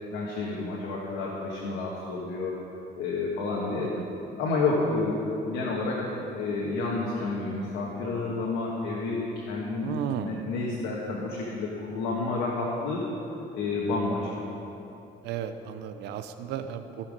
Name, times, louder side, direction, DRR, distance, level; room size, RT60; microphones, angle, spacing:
voice 1, 0.1-2.6 3.0-3.9 4.4-9.9 10.2-13.0 13.5-14.4, left 3 dB, 90° left, -4 dB, 1.5 m, -30 dB
voice 2, 9.8-10.5 15.2-17.1, right 9 dB, 85° right, 9 dB, 0.7 m, -34 dB
16.0 x 5.7 x 5.3 m, 2.9 s
cardioid pair, 110°, 17 cm